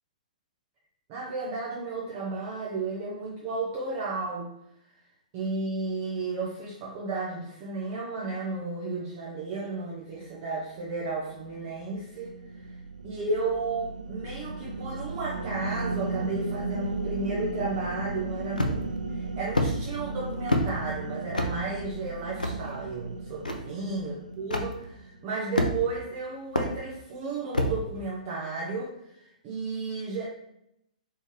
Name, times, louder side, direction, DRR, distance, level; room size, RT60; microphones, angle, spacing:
voice 1, 1.1-4.5 5.3-12.3 12.6-12.8 13.0-30.3, right 3 dB, 30° right, -5 dB, 0.9 m, -33 dB
sound 1, 10.8-25.3, right 3 dB, 75° right, 0.4 m, -36 dB
sound 2, 18.6-19.0 19.6-19.7 20.5-20.7 21.3-21.5 22.4-22.6 23.5-23.6 24.5-24.7 25.6-26.0 26.6-26.7 27.5-27.8, left 1 dB, 80° left, 0.6 m, -25 dB
4.0 x 3.8 x 3.2 m, 0.79 s
figure-of-eight pair, 120°, 4 cm